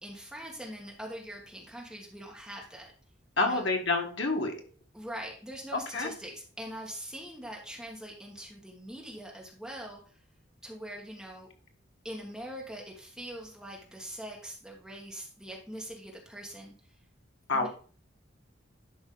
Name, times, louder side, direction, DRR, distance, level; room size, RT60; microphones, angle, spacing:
voice 1, 0.0-2.9 3.4-3.7 4.9-10.2 10.6-11.5 12.0-16.7 17.5-17.7, right 1 dB, 5° right, -2 dB, 1.7 m, -43 dB
voice 2, 3.4-4.5 5.7-6.1 17.5-17.7, left 3 dB, 70° left, 3 dB, 1.6 m, -28 dB
11.5 x 5.1 x 3.9 m, 0.41 s
head